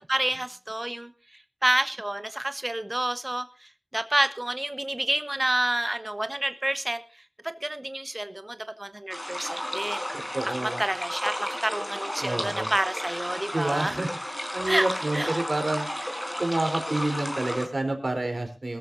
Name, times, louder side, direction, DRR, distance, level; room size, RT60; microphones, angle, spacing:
voice 1, 0.1-1.1 1.6-7.0 7.4-10.0 10.4-14.0 14.7-14.9 15.1-15.4, right 1 dB, 35° right, 9 dB, 1.3 m, -29 dB
sound 1, 9.1-17.7, equal, 20° left, 4.3 m, -33 dB
voice 2, 10.1-10.8 12.2-12.7 13.5-14.1 14.5-15.9 16.4-18.8, right 2 dB, 70° right, 5 dB, 4.1 m, -28 dB
21.5 x 14.0 x 2.7 m, 0.31 s
wide cardioid pair, 50°, 0 cm